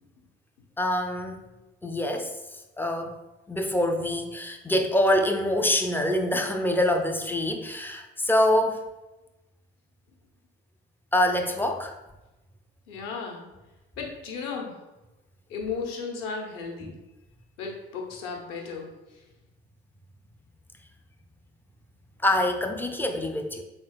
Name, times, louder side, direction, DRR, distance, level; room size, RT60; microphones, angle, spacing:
voice 1, 0.8-1.4 1.8-2.3 2.8-3.2 3.5-8.8 11.1-11.9 22.2-23.6, left 1 dB, 5° left, 5 dB, 0.3 m, -25 dB
voice 2, 12.9-13.5 14.0-14.7 15.5-16.9 17.6-18.9, left 5 dB, 65° left, 1 dB, 0.9 m, -34 dB
4.1 x 3.7 x 2.3 m, 1.0 s
figure-of-eight pair, 60°, 32 cm